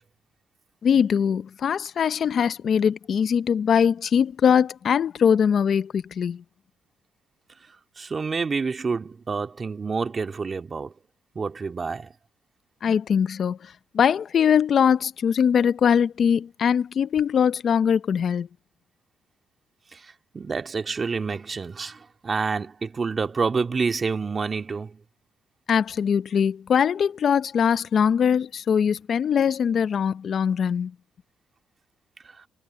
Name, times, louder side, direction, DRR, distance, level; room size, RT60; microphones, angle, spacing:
voice 1, 0.8-6.4 12.8-18.5 25.7-30.9, left 7 dB, 55° left, 0.7 m, -22 dB
voice 2, 8.0-10.9 11.4-12.1 19.9-20.0 20.3-25.0, right 4 dB, 35° right, 2.4 m, -28 dB
cardioid pair, 90°, 0 cm